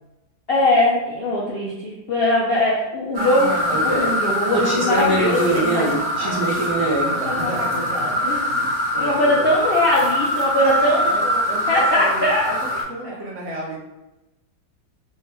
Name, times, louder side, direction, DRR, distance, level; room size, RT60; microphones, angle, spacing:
voice 1, 0.5-6.7 7.1-7.5 7.9-8.4 9.0-12.5 13.0-13.1, left 1 dB, 80° left, -5 dB, 0.5 m, -21 dB
sound 1, 3.1-12.8, equal, 30° right, 0.4 m, -22 dB
voice 2, 6.7-9.5 10.6-12.6 12.9-13.8, right 1 dB, 55° right, -3 dB, 1.0 m, -33 dB
3.3 x 3.1 x 3.3 m, 0.99 s
omnidirectional pair, 1.9 m